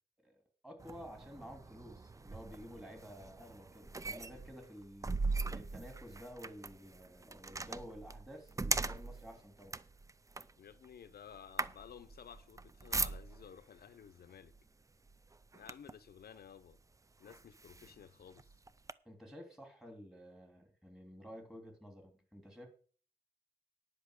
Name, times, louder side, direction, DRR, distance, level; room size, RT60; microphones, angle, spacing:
voice 1, 0.2-5.1 5.5-9.8 19.0-22.7, equal, 5° right, 3.1 m, -52 dB
sound 1, 0.8-13.6 14.5-14.7 15.1-16.1 16.7-16.8 17.3-18.9, right 3 dB, 20° right, 0.4 m, -40 dB
voice 2, 10.6-14.5 15.5-16.8 17.2-18.5, left 8 dB, 75° left, 0.7 m, -54 dB
10.5 x 5.6 x 8.1 m
wide cardioid pair, 120°, 16 cm